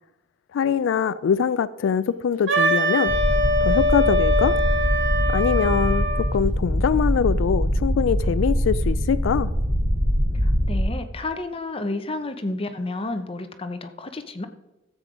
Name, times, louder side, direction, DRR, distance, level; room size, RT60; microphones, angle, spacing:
voice 1, 0.5-3.1 3.6-4.6 5.3-9.5, left 7 dB, 75° left, 0.3 m, -23 dB
Wind instrument woodwind instrument, 2.5-6.3, equal, 70° right, 2.0 m, -23 dB
sound 1, 3.1-10.8, equal, 50° right, 3.7 m, -23 dB
voice 2, 10.4-14.5, left 2 dB, 30° left, 0.8 m, -31 dB
13.0 x 7.6 x 5.0 m
head